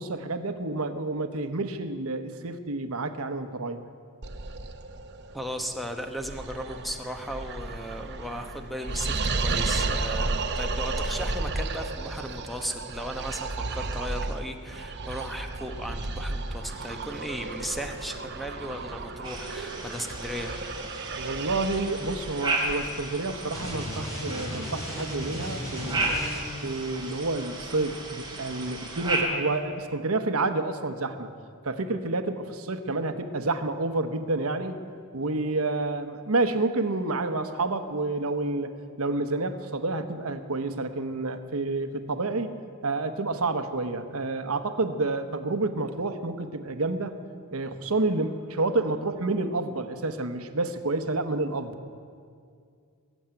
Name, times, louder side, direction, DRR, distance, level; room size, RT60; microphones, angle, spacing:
voice 1, 0.0-3.9 21.2-26.2 26.6-31.3 31.6-34.8 35.1-38.7 39.0-42.6 42.8-47.1 47.5-51.7, right 2 dB, 80° right, 9 dB, 1.0 m, -29 dB
sound 1, 4.2-23.9, right 3 dB, 50° right, 0.9 m, -33 dB
voice 2, 5.3-20.6, equal, ahead, 5 dB, 1.0 m, -36 dB
sound 2, 19.2-29.2, right 2 dB, 20° right, 2.8 m, -34 dB
sound 3, 23.5-26.7, left 1 dB, 15° left, 5.0 m, -35 dB
21.0 x 7.2 x 8.9 m, 2.3 s
head